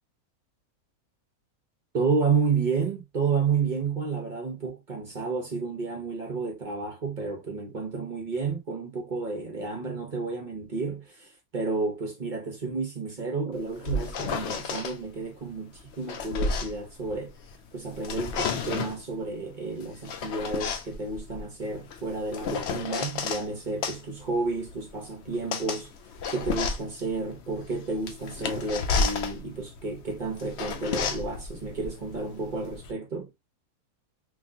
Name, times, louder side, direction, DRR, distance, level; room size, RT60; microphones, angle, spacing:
voice 1, 1.9-17.3 17.7-25.9 26.3-33.3, right 4 dB, 45° right, 0.6 m, -31 dB
sound 1, 13.6-15.0 15.8-17.6 17.9-19.0 19.8-23.5 23.8-32.9, left 4 dB, 65° left, 0.7 m, -32 dB
3.6 x 2.4 x 2.6 m
omnidirectional pair, 1.6 m